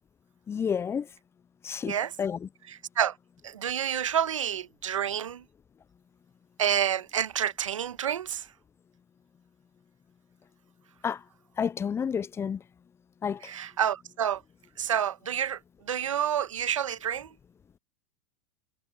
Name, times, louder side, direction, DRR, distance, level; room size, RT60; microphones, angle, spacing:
voice 1, 0.5-1.0 1.6-2.4 11.0-11.2 11.6-12.6 13.2-13.4, left 7 dB, 15° left, 0.4 m, -30 dB
voice 2, 2.7-3.2 3.4-5.4 6.6-8.5 13.4-14.4 14.8-15.6 15.9-17.3, right 9 dB, 90° right, 1.3 m, -29 dB
hypercardioid pair, 110°, 16 cm